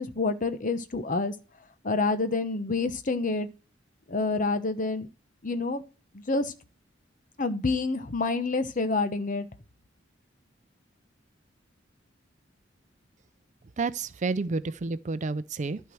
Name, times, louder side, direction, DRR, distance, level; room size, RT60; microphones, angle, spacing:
voice 1, 0.0-1.3 1.8-3.5 4.1-5.1 5.4-5.8 6.1-6.5 7.4-9.5, left 3 dB, 45° left, 1.0 m, -28 dB
voice 2, 13.8-15.8, right 3 dB, 40° right, 0.5 m, -30 dB
11.5 x 4.6 x 6.2 m
head